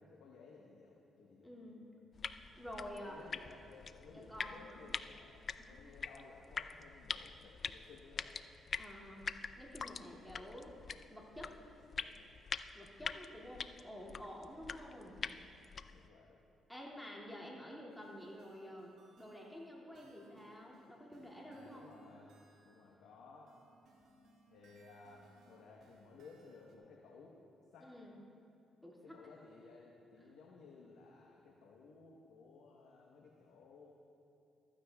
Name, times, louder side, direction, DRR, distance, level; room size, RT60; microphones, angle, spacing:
voice 1, 0.0-1.5 3.0-8.4 9.1-9.3 10.1-10.5 11.3-12.4 12.9-13.0 15.9-16.4 21.4-22.4 22.6-23.6 24.5-27.4 27.7-27.9 29.0-33.9, left 4 dB, 85° left, -2 dB, 1.0 m, -58 dB
voice 2, 1.4-1.9 2.6-3.2 4.1-4.9 5.6-5.8 8.7-10.7 11.1-11.5 12.7-15.3 16.7-22.0 27.8-28.2 28.8-29.2, equal, 5° left, -4 dB, 2.3 m, -50 dB
sound 1, 2.1-16.1, left 5 dB, 45° left, 0.3 m, -45 dB
sound 2, 17.9-22.9 23.5-26.8, right 2 dB, 75° right, 1.9 m, -68 dB
15.0 x 13.5 x 2.3 m, 2.7 s
cardioid pair, 90°, 0 cm